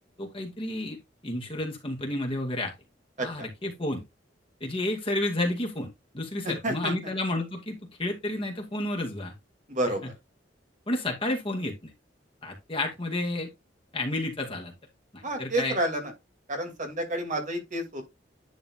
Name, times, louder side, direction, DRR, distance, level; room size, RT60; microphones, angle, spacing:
voice 1, 0.2-1.0 1.2-2.7 3.2-4.0 4.6-9.3 10.9-11.9 12.4-13.5 13.9-14.7 15.1-15.8, left 1 dB, 30° left, 2.4 m, -31 dB
voice 2, 3.2-3.5 6.4-6.9 9.7-10.1 15.2-16.1 16.5-18.0, right 1 dB, 45° right, 2.5 m, -30 dB
10.5 x 4.0 x 3.7 m
head